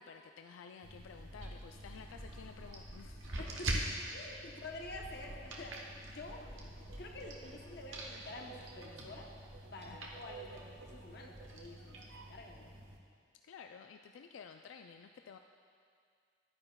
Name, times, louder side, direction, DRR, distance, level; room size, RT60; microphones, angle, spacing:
voice 1, 0.0-3.3 9.8-10.0 13.4-15.4, left 6 dB, 85° left, 5 dB, 0.3 m, -53 dB
sound 1, 0.8-13.0, right 1 dB, 85° right, 1.1 m, -45 dB
voice 2, 3.4-9.3 9.7-12.7, left 2 dB, 55° left, 0 dB, 0.9 m, -49 dB
sound 2, 6.8-12.4, right 6 dB, 60° right, 0.4 m, -57 dB
11.0 x 9.7 x 2.3 m, 2.2 s
head